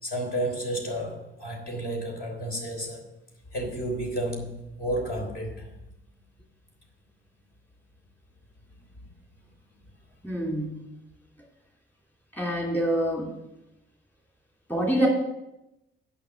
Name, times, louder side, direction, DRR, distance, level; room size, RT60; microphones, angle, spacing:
voice 1, 0.0-3.1 3.5-5.7, right 1 dB, 50° left, 0 dB, 3.3 m, -31 dB
voice 2, 10.2-10.8 12.3-13.4 14.7-15.1, right 1 dB, 10° left, -2 dB, 2.8 m, -26 dB
8.6 x 5.8 x 7.6 m, 0.91 s
cardioid pair, 90°, 20 cm